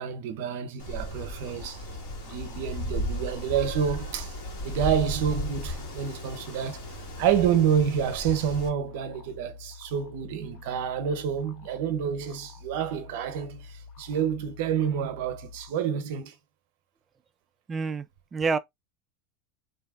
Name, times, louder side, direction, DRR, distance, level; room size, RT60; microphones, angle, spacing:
voice 1, 0.0-1.8 2.2-4.3 4.6-6.8 7.2-16.3, right 8 dB, 65° right, 0.7 m, -28 dB
Wind, 0.8-8.7, left 1 dB, 75° left, 1.6 m, -36 dB
sound 1, 1.2-15.7, left 5 dB, 50° left, 0.5 m, -47 dB
voice 2, 17.7-18.1 18.3-18.6, right 4 dB, 20° right, 0.3 m, -27 dB
3.3 x 2.6 x 2.3 m
supercardioid pair, 120°, 0 cm